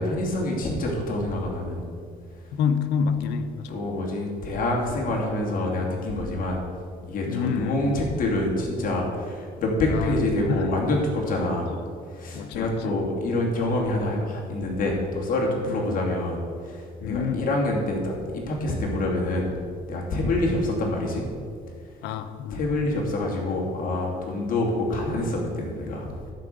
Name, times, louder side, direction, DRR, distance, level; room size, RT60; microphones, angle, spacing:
voice 1, 0.0-1.8 3.7-6.6 7.1-11.7 12.1-19.5 19.9-21.3 22.5-26.1, left 2 dB, 55° left, -1 dB, 2.7 m, -26 dB
voice 2, 2.5-3.8 7.3-8.0 9.9-10.2 10.5-10.7 11.7-11.9 12.3-13.0 15.7-15.9 17.0-17.5 20.2-20.3 22.0-22.6, left 6 dB, 90° left, 10 dB, 0.8 m, -28 dB
11.5 x 4.8 x 7.9 m, 2.1 s
cardioid pair, 110°, 17 cm